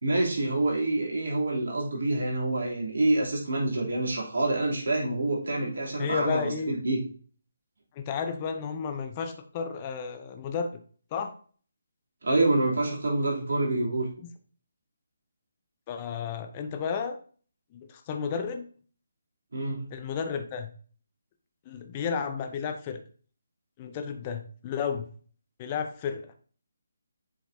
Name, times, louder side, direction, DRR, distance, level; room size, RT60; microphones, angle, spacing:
voice 1, 0.0-7.0 12.2-14.1 19.5-19.9, right 2 dB, 65° right, -3 dB, 3.3 m, -27 dB
voice 2, 6.0-6.8 8.0-10.8 11.1-11.3 14.2-14.3 15.9-17.2 17.7-18.7 19.9-20.7 21.7-23.0 23.8-25.0 25.6-26.2, left 6 dB, 25° left, 6 dB, 0.7 m, -32 dB
7.5 x 5.6 x 2.8 m, 0.43 s
figure-of-eight pair, 150°, 0 cm